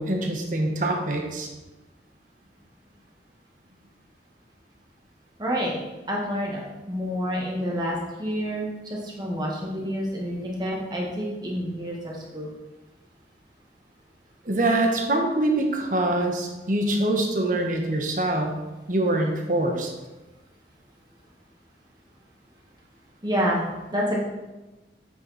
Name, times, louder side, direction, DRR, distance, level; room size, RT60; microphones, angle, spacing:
voice 1, 0.0-1.5 14.4-18.5 18.9-19.9, right 1 dB, 45° right, 2 dB, 1.4 m, -24 dB
voice 2, 5.4-5.7 6.1-6.6 6.9-12.5 23.2-24.2, equal, 25° right, -3 dB, 1.8 m, -28 dB
8.8 x 7.2 x 4.3 m, 1.1 s
head